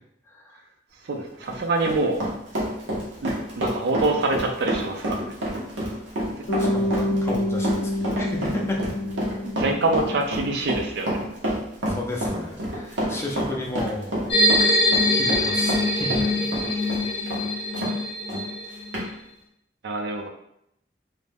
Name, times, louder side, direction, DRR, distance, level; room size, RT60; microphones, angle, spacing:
voice 1, 0.3-0.6 6.6-8.8 11.9-14.4 14.9-16.5, left 2 dB, 15° left, -2 dB, 0.4 m, -33 dB
voice 2, 1.1-2.2 3.2-5.3 9.4-11.1 19.8-20.3, right 2 dB, 60° right, 3 dB, 0.4 m, -25 dB
Run, 1.3-17.9 18.3-18.4 18.9-19.1, equal, 90° right, 0.9 m, -28 dB
Bass guitar, 6.5-10.7, left 1 dB, 60° left, 0.6 m, -28 dB
sound 1, 14.3-19.0, left 1 dB, 30° left, 0.8 m, -23 dB
2.5 x 2.1 x 3.3 m, 0.79 s
head